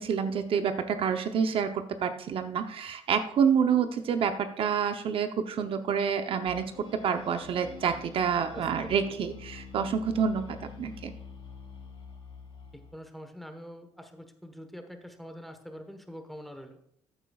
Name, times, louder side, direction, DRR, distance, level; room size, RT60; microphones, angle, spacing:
voice 1, 0.0-6.7 7.0-11.1, right 7 dB, 60° right, 8 dB, 0.8 m, -28 dB
sound 1, 6.5-13.0, left 6 dB, 55° left, 3.5 m, -46 dB
voice 2, 8.5-9.0 12.7-16.8, equal, ahead, 6 dB, 1.2 m, -45 dB
14.0 x 8.6 x 2.4 m, 0.71 s
cardioid pair, 120°, 11 cm